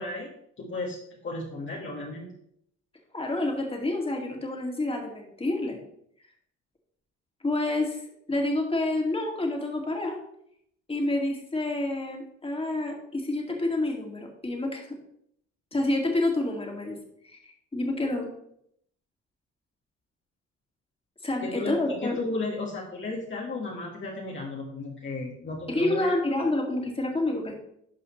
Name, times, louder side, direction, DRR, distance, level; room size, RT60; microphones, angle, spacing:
voice 1, 0.0-2.4 21.4-26.2, left 2 dB, 40° left, -3 dB, 1.7 m, -34 dB
voice 2, 3.1-5.8 7.4-8.0 8.3-10.2 10.9-15.0 15.7-17.0 17.2-18.3 21.2-22.2 25.7-27.5, left 2 dB, 20° left, 1 dB, 2.2 m, -28 dB
11.5 x 5.4 x 3.1 m, 0.71 s
cardioid pair, 90°, 30 cm